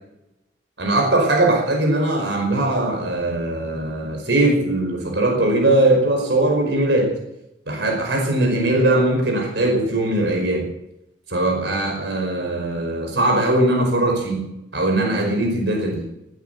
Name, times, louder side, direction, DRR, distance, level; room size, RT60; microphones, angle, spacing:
voice 1, 0.8-7.2 7.7-10.7 11.3-16.0, right 1 dB, 65° right, 1 dB, 5.2 m, -20 dB
19.5 x 9.2 x 7.0 m, 0.87 s
head